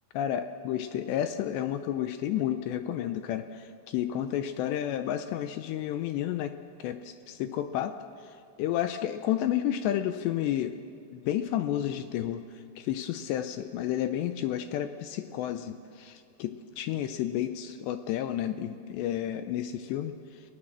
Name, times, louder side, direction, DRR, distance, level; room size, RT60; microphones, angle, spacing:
voice 1, 0.2-8.0 8.2-10.8 11.1-20.4, left 11 dB, 80° left, 9 dB, 2.6 m, -31 dB
30.0 x 19.0 x 7.4 m, 2.4 s
omnidirectional pair, 5.6 m